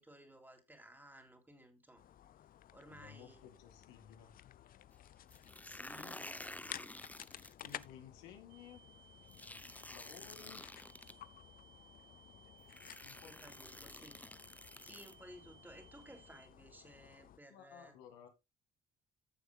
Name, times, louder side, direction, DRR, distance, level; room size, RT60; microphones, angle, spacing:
voice 1, 0.0-2.0 2.7-3.4 5.6-6.8 13.2-14.2 14.8-17.9, right 1 dB, 10° right, 3.3 m, -57 dB
sound 1, 2.0-17.4, left 11 dB, 50° left, 0.6 m, -55 dB
voice 2, 2.9-4.4 6.0-6.3 7.6-8.8 9.9-10.7 13.0-13.6 13.8-13.9 17.5-18.3, left 8 dB, 85° left, 2.3 m, -56 dB
sound 2, 5.3-7.9 9.3-11.1 12.1-12.2 12.7-15.1, left 2 dB, 10° left, 0.7 m, -50 dB
sound 3, 8.5-16.5, right 7 dB, 70° right, 2.0 m, -64 dB
14.5 x 7.0 x 2.4 m
hypercardioid pair, 60°, 18 cm